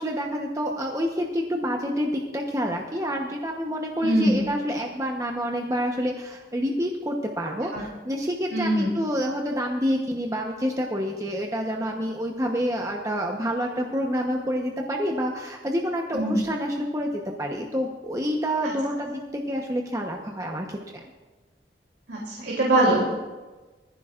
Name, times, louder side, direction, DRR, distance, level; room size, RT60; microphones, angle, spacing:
voice 1, 0.0-21.0, equal, 20° right, 1 dB, 1.0 m, -28 dB
voice 2, 4.0-4.4 7.7-7.8 8.5-8.9 16.1-16.4 22.1-23.1, right 1 dB, 80° right, -4 dB, 3.0 m, -22 dB
20.0 x 15.0 x 2.5 m, 1.3 s
head